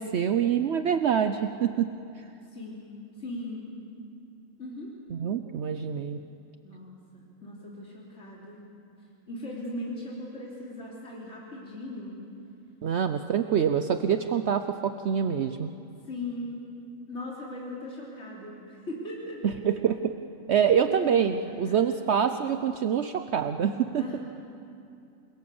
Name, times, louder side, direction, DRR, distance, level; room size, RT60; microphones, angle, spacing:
voice 1, 0.0-2.2 5.1-6.2 12.8-15.7 19.4-20.1 20.5-24.0, right 8 dB, 60° right, 8 dB, 0.9 m, -26 dB
voice 2, 2.4-2.9 3.2-3.7 4.6-4.9 6.6-8.6 9.3-12.2 16.0-16.6 17.1-19.4 20.9-21.3 21.6-22.0 24.0-24.2, left 1 dB, 60° left, -5 dB, 3.8 m, -39 dB
28.5 x 22.0 x 7.0 m, 2.6 s
omnidirectional pair, 1.4 m